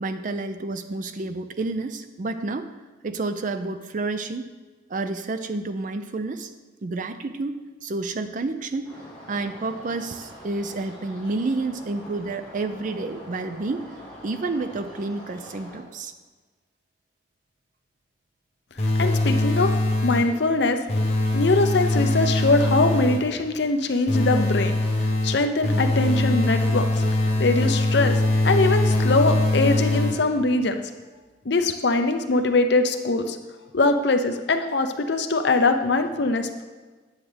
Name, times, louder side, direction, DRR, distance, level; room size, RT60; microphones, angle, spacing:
voice 1, 0.0-2.7 3.0-4.5 4.9-6.5 6.8-8.9 9.3-13.9 14.2-16.1, right 3 dB, 40° right, 9 dB, 0.4 m, -29 dB
sound 1, 8.8-15.8, equal, 10° left, 2.4 m, -44 dB
sound 2, 18.8-20.4 20.9-23.4 24.1-30.5, left 2 dB, 35° left, 1.0 m, -22 dB
voice 2, 19.0-19.7 20.0-20.8 21.3-24.8 25.2-26.9 27.4-30.8 31.5-33.4 33.7-36.6, left 3 dB, 60° left, 7 dB, 0.6 m, -22 dB
9.6 x 7.3 x 3.4 m, 1.3 s
head